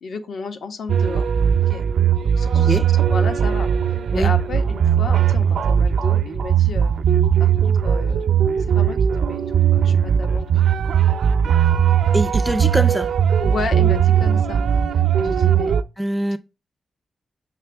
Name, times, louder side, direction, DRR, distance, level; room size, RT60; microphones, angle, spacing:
voice 1, 0.0-1.3 1.7-1.8 2.2-6.9 7.4-8.3 8.7-9.0 9.3-9.4 9.7-10.5 13.4-15.8, left 4 dB, 75° left, 1.3 m, -33 dB
sound 1, 0.9-15.8, right 8 dB, 90° right, 0.5 m, -18 dB
voice 2, 12.1-13.1 16.0-16.4, right 1 dB, ahead, 0.4 m, -23 dB
7.7 x 6.1 x 3.4 m
wide cardioid pair, 150°, 0 cm